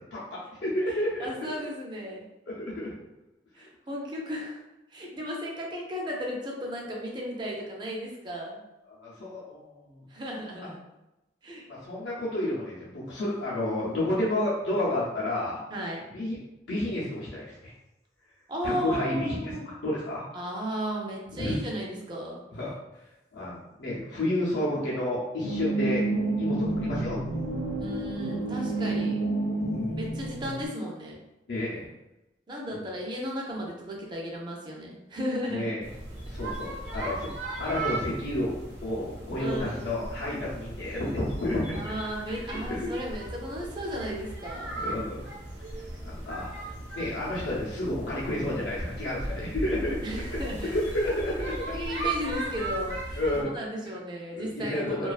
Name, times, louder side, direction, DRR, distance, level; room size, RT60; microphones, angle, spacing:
voice 1, 0.1-1.3 2.5-2.9 8.9-10.0 11.7-15.6 16.1-16.4 16.7-17.7 18.6-20.2 21.3-21.6 22.5-22.7 23.3-26.0 26.3-27.2 29.7-30.0 31.5-31.9 35.5-35.8 36.3-37.3 37.6-41.9 42.5-42.9 44.7-45.2 46.0-46.5 46.9-50.0 50.3-50.4 50.7-51.7 53.2-53.5 53.9-54.0 54.3-55.1, left 1 dB, 90° left, -7 dB, 0.6 m, -31 dB
voice 2, 1.2-2.2 3.5-4.6 4.9-8.6 10.1-10.8 11.4-11.7 15.7-16.0 18.5-19.7 20.3-22.4 27.8-29.2 30.0-31.2 32.5-35.7 39.4-40.0 41.7-44.7 50.0-50.7 51.7-53.2 53.5-55.1, equal, 25° right, -2 dB, 0.4 m, -35 dB
sound 1, 25.4-30.6, right 2 dB, 40° left, 0.4 m, -29 dB
sound 2, 35.8-53.4, right 2 dB, 75° right, 0.7 m, -37 dB
2.3 x 2.3 x 2.3 m, 0.96 s
head